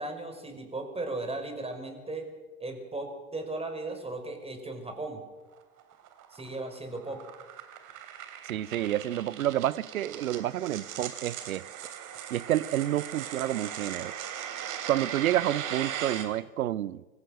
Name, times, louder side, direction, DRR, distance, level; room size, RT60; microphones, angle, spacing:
voice 1, 0.0-2.3 2.6-5.2 6.3-7.2, right 2 dB, 15° right, 5.6 m, -36 dB
sound 1, 5.5-16.2, right 9 dB, 45° right, 3.3 m, -39 dB
voice 2, 8.5-11.6 12.3-14.1 14.9-17.0, right 13 dB, 75° right, 0.8 m, -29 dB
24.5 x 15.5 x 7.8 m
figure-of-eight pair, 70°, 42 cm